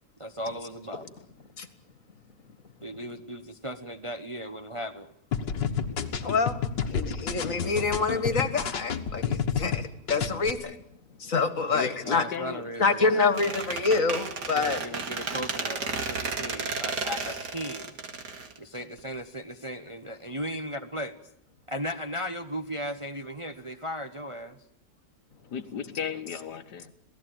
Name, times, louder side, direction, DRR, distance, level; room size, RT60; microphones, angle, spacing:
voice 1, 0.2-1.1 2.8-5.1 12.0-13.0 14.5-18.0 18.6-21.1 21.7-24.6, equal, 20° right, 1.0 m, -36 dB
sound 1, 5.3-9.8 10.1-10.5, left 7 dB, 90° left, 2.2 m, -29 dB
voice 2, 6.2-10.8 11.2-12.2 12.8-14.8, left 4 dB, 50° left, 2.1 m, -26 dB
voice 3, 11.7-12.6 20.5-20.6 25.5-26.9, left 7 dB, 70° left, 1.7 m, -35 dB
Squeak, 13.4-19.1, right 4 dB, 70° right, 2.7 m, -33 dB
27.0 x 18.0 x 9.2 m
omnidirectional pair, 1.9 m